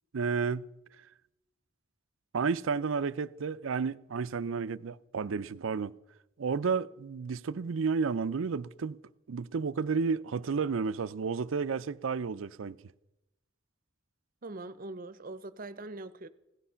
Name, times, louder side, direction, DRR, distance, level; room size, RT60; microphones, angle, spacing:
voice 1, 0.1-0.7 2.3-5.9 6.4-9.0 9.3-12.8, right 5 dB, 85° right, 0.5 m, -31 dB
voice 2, 14.4-16.3, right 2 dB, 45° right, 0.7 m, -42 dB
17.0 x 12.0 x 5.7 m
head